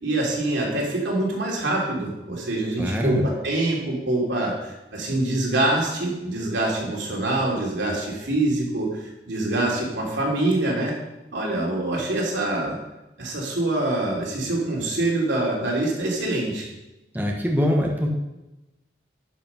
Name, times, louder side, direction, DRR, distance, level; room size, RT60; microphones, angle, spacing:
voice 1, 0.0-10.9 11.3-12.7 13.2-16.7, right 2 dB, 90° right, -2 dB, 2.9 m, -25 dB
voice 2, 2.8-3.3 17.1-18.1, equal, 10° right, 0 dB, 1.1 m, -23 dB
11.0 x 5.3 x 5.7 m, 0.98 s
head